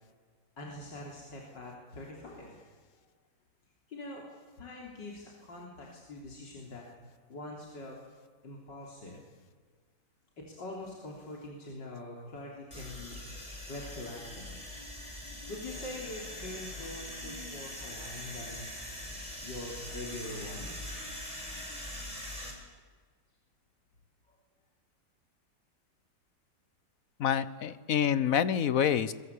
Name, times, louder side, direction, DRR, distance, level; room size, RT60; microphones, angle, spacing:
voice 1, 0.6-2.7 3.9-4.3 4.6-6.9 7.3-8.0 8.4-9.2 10.4-13.2 13.7-14.6 15.5-18.7 19.4-20.9 24.3-24.4, left 2 dB, 80° left, -2 dB, 4.2 m, -44 dB
sound 1, 12.7-22.5, left 1 dB, 20° left, 5.4 m, -42 dB
voice 2, 27.2-29.1, left 8 dB, 55° left, 16 dB, 1.2 m, -27 dB
25.5 x 22.0 x 8.4 m, 1.5 s
omnidirectional pair, 1.9 m